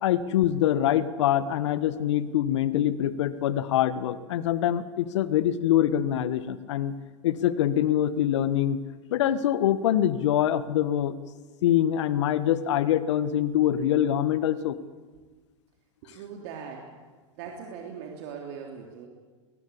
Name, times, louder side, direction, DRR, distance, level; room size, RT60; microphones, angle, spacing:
voice 1, 0.0-6.9 7.2-8.8 9.1-11.2 11.6-14.8, left 11 dB, 65° left, 14 dB, 1.4 m, -24 dB
voice 2, 16.0-16.9 17.4-19.1, right 6 dB, 60° right, 1 dB, 3.3 m, -40 dB
22.0 x 18.5 x 8.5 m, 1.4 s
hypercardioid pair, 90°, 16 cm